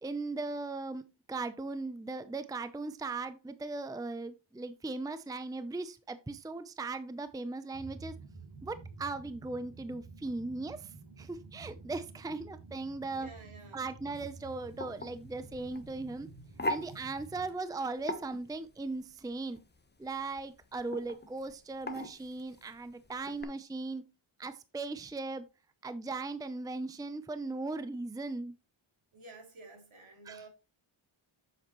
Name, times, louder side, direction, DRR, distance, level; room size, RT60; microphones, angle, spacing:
voice 1, 0.0-8.1 8.6-13.3 13.7-16.3 16.7-19.6 20.0-24.0 24.4-25.4 25.8-28.5 30.2-30.4, right 3 dB, 10° right, 0.6 m, -38 dB
sound 1, 7.7-17.5, right 4 dB, 50° right, 3.4 m, -50 dB
voice 2, 13.1-13.9 29.1-30.5, right 2 dB, 70° right, 3.1 m, -51 dB
sound 2, 14.1-23.4, left 1 dB, 20° left, 0.9 m, -42 dB
7.8 x 7.1 x 3.1 m
wide cardioid pair, 80°, 50 cm